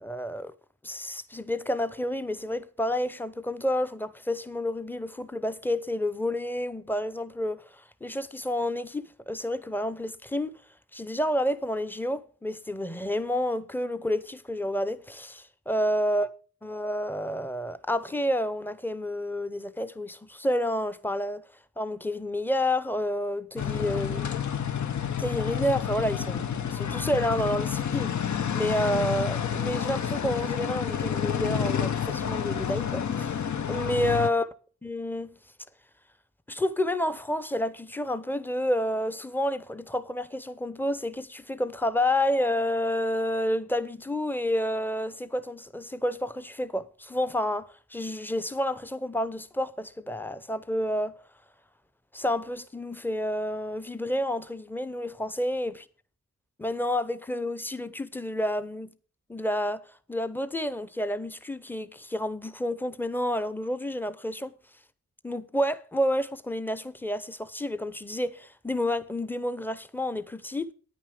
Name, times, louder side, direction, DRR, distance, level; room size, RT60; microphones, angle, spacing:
voice 1, 0.0-0.5 0.8-10.6 10.9-16.3 16.6-21.4 21.8-24.4 25.2-34.5 34.8-35.4 36.5-51.2 52.1-55.8 56.6-58.9 59.3-59.8 60.1-64.5 65.2-70.7, left 1 dB, 5° left, 0.8 m, -30 dB
sound 1, 23.6-34.3, left 8 dB, 55° left, 0.7 m, -29 dB
9.9 x 9.3 x 5.0 m
wide cardioid pair, 85°, 35 cm